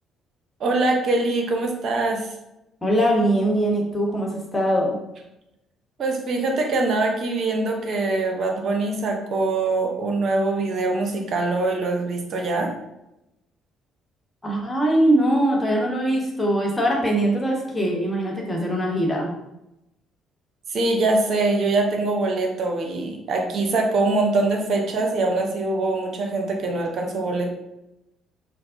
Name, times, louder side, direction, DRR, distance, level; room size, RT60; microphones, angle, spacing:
voice 1, 0.6-2.3 6.0-12.7 20.7-27.5, right 2 dB, 50° right, 2 dB, 0.7 m, -23 dB
voice 2, 2.8-4.9 14.4-19.3, right 1 dB, 15° left, -2 dB, 1.2 m, -21 dB
4.5 x 2.0 x 3.7 m, 0.89 s
figure-of-eight pair, 45°, 0 cm